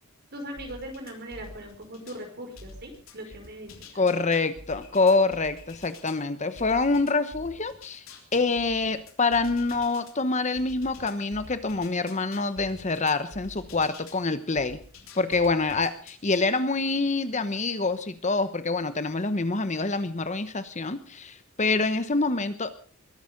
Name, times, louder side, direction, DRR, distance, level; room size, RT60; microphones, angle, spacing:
voice 1, 0.3-3.7, equal, 50° right, 4 dB, 5.1 m, -39 dB
sound 1, 0.6-2.2 2.6-6.2 6.6-10.1 10.6-14.2 14.6-16.5, left 2 dB, 70° left, 3.5 m, -47 dB
voice 2, 4.0-8.0 8.3-14.8 15.1-22.8, left 3 dB, 35° left, 11 dB, 1.0 m, -26 dB
22.0 x 11.5 x 5.2 m, 0.43 s
head